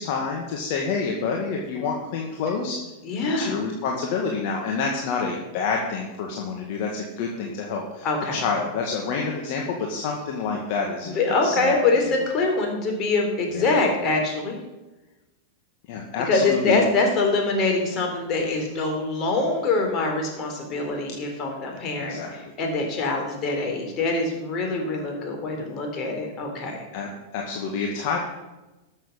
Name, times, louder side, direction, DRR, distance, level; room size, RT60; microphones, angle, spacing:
voice 1, 0.0-2.8 3.2-11.2 11.4-11.7 13.5-13.8 15.9-16.8 22.1-22.3 26.9-28.2, left 5 dB, 55° left, 0 dB, 1.8 m, -28 dB
voice 2, 3.0-3.5 8.0-8.4 11.0-14.6 16.3-26.9, left 3 dB, 40° left, 2 dB, 3.7 m, -24 dB
13.0 x 7.4 x 5.6 m, 1.1 s
hypercardioid pair, 100°, 0 cm